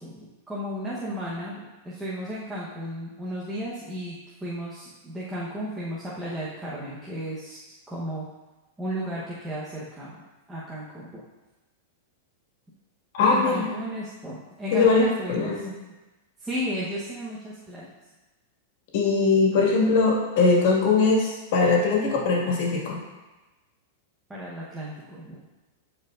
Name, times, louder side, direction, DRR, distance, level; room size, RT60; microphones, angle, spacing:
voice 1, 0.0-7.6 7.9-8.3 8.8-10.2 10.5-11.2 13.2-15.7 16.4-17.9 24.3-25.5, equal, 10° right, -8 dB, 1.1 m, -34 dB
voice 2, 13.1-13.7 14.7-15.7 18.9-23.0, left 4 dB, 55° left, -2 dB, 2.1 m, -21 dB
13.0 x 4.6 x 2.6 m, 1.1 s
supercardioid pair, 145°, 0 cm